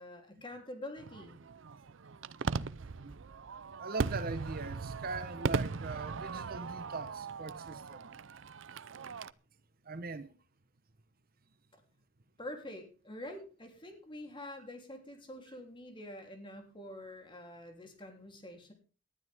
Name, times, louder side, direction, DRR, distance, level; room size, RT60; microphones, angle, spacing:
voice 1, 0.0-1.4 12.4-18.7, left 1 dB, 25° left, 3.3 m, -46 dB
Fireworks, 1.0-9.3, right 4 dB, 70° right, 0.6 m, -38 dB
voice 2, 2.8-3.2 3.8-8.1 9.8-10.4 13.2-13.3, right 3 dB, 50° right, 1.0 m, -41 dB
19.0 x 12.0 x 3.6 m
head